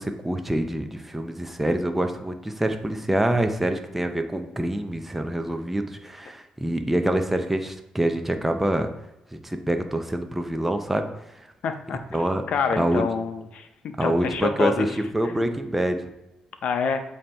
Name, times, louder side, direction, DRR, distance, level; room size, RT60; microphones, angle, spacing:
voice 1, 0.0-8.9 9.3-11.1 12.1-12.4 12.8-13.0 14.0-14.9 15.1-16.1, right 1 dB, 10° right, 6 dB, 0.6 m, -26 dB
voice 2, 11.6-12.0 12.5-14.9 16.6-17.0, left 5 dB, 65° left, 7 dB, 0.7 m, -27 dB
7.4 x 2.9 x 4.4 m, 0.92 s
cardioid pair, 95°, 2 cm